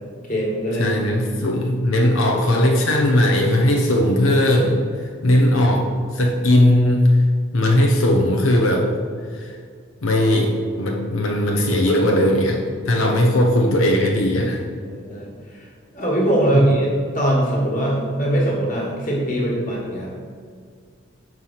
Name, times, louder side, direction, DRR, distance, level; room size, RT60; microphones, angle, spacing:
voice 1, 0.3-1.0 14.8-15.7 15.9-20.1, right 1 dB, 40° left, -3 dB, 1.7 m, -21 dB
voice 2, 0.8-5.9 6.1-7.2 7.5-8.9 9.3-9.6 10.0-12.6 12.8-14.6 16.5-16.6, left 1 dB, 85° left, 0 dB, 0.8 m, -18 dB
5.6 x 4.7 x 5.7 m, 2.1 s
head